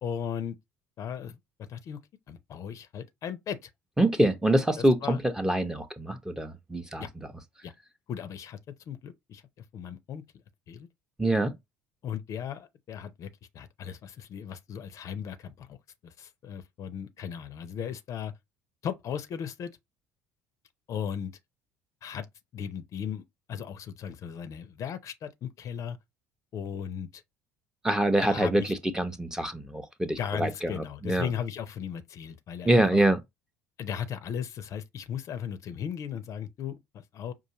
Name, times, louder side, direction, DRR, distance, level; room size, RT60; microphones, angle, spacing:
voice 1, 0.0-0.6 1.0-2.0 2.3-3.7 4.8-5.2 7.0-7.1 7.6-7.7 8.1-8.6 8.9-9.4 9.7-10.2 10.7-10.9 12.0-15.8 16.0-18.3 18.8-19.7 20.9-21.3 22.0-22.3 22.5-23.2 23.5-26.0 26.5-27.2 28.2-28.7 30.2-33.1 33.8-37.3, left 8 dB, 45° left, 0.6 m, -36 dB
voice 2, 4.0-7.1 11.2-11.5 27.8-30.7 31.0-31.3 32.6-33.2, right 1 dB, 5° right, 0.7 m, -25 dB
5.4 x 2.5 x 2.9 m
figure-of-eight pair, 60°, 7 cm